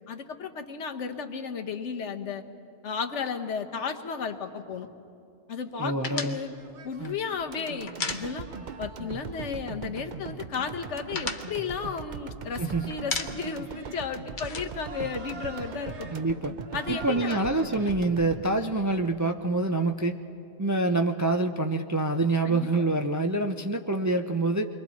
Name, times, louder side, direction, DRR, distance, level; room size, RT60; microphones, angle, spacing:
voice 1, 0.1-2.4 2.8-4.9 5.5-6.6 6.8-8.5 8.8-16.1 16.7-17.5 22.4-22.7, left 5 dB, 85° left, 5 dB, 1.3 m, -34 dB
voice 2, 5.8-6.4 7.0-7.1 12.6-12.9 16.1-16.5 16.9-20.2 20.6-24.7, right 2 dB, 30° right, 4 dB, 0.3 m, -26 dB
sound 1, 6.0-8.8 9.1-9.3 9.6-10.2 10.6-12.6 12.9-13.7 13.9-15.7, left 4 dB, 45° left, 1.0 m, -36 dB
sound 2, 6.5-17.9, right 5 dB, 80° right, 1.3 m, -48 dB
sound 3, 7.5-19.7 20.1-20.2, right 5 dB, 50° right, 0.7 m, -40 dB
28.5 x 22.5 x 4.1 m, 2.7 s
omnidirectional pair, 1.2 m